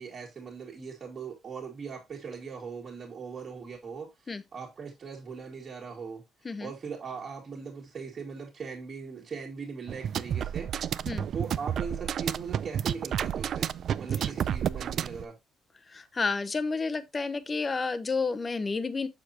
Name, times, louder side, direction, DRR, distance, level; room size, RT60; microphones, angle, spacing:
voice 1, 0.0-4.1 4.5-6.2 6.6-10.7 11.3-15.4, right 5 dB, 35° right, 1.9 m, -40 dB
sound 1, 9.9-15.3, right 9 dB, 50° right, 0.3 m, -31 dB
voice 2, 15.9-19.1, left 4 dB, 25° left, 0.7 m, -30 dB
6.9 x 6.7 x 2.8 m
cardioid pair, 150°, 0 cm